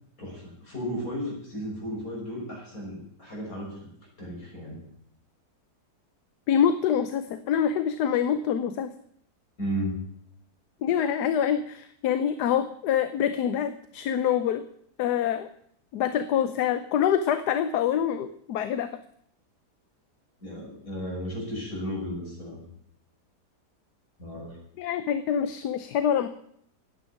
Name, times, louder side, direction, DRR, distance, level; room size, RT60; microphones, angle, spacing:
voice 1, 0.2-3.9 4.2-4.8 9.6-10.0 20.4-22.7 24.2-24.6, equal, 55° left, -3 dB, 6.4 m, -34 dB
voice 2, 6.5-8.9 10.8-14.6 15.0-15.5 15.9-18.9 24.8-26.3, left 9 dB, 75° left, 11 dB, 1.3 m, -25 dB
9.6 x 9.1 x 9.8 m, 0.69 s
omnidirectional pair, 1.8 m